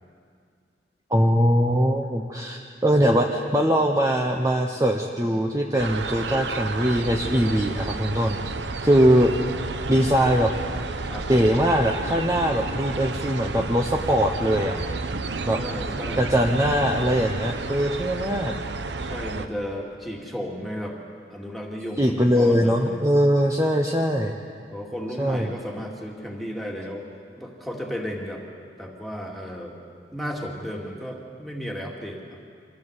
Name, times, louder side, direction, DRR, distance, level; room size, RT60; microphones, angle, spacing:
voice 1, 1.1-8.4 8.8-9.3 9.9-10.5 11.3-14.7 15.4-15.6 16.2-18.5 22.0-24.3 25.2-25.5, equal, 20° right, 0 dB, 1.0 m, -21 dB
sound 1, 5.8-19.5, right 3 dB, 80° right, 1.0 m, -31 dB
voice 2, 11.1-11.4 15.6-16.3 19.1-21.0 21.3-23.1 24.7-27.1 27.4-28.4 28.8-29.8 30.1-32.4, equal, ahead, -1 dB, 2.3 m, -34 dB
24.5 x 14.5 x 8.1 m, 2.2 s
head